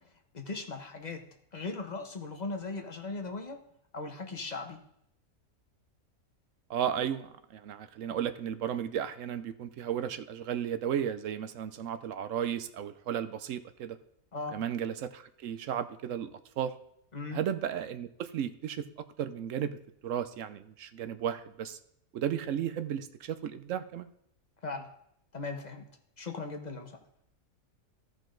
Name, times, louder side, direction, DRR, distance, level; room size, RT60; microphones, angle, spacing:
voice 1, 0.3-1.2 1.5-3.6 3.9-4.8 14.3-14.6 17.1-17.4 24.6-24.9 25.3-25.9 26.2-27.0, left 3 dB, 35° left, 4 dB, 1.1 m, -38 dB
voice 2, 6.7-14.0 14.5-16.3 16.6-16.7 17.3-18.8 19.2-19.8 20.0-21.8 22.1-24.1, right 9 dB, 70° right, 12 dB, 0.9 m, -34 dB
14.0 x 5.3 x 3.8 m, 0.73 s
omnidirectional pair, 1.5 m